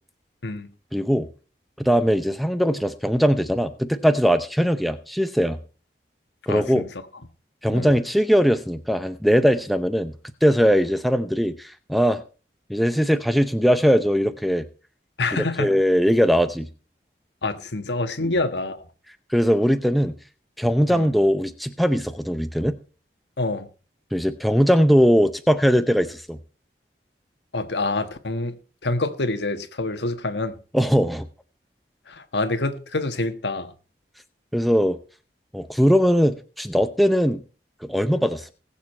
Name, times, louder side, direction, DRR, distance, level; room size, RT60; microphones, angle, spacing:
voice 1, 0.9-1.3 1.8-5.6 6.5-6.8 7.6-10.1 10.4-12.2 12.7-14.6 15.3-16.7 18.2-18.3 19.3-20.2 20.6-22.8 24.1-26.4 30.7-31.3 34.5-35.0 35.5-37.4 37.8-38.5, equal, ahead, 0.6 m, -20 dB
voice 2, 6.5-6.9 7.7-8.0 15.2-15.7 17.4-18.8 20.9-21.1 23.4-23.7 27.5-28.6 28.8-30.6 32.1-33.7, left 2 dB, 85° left, 1.4 m, -26 dB
20.0 x 7.3 x 4.3 m
head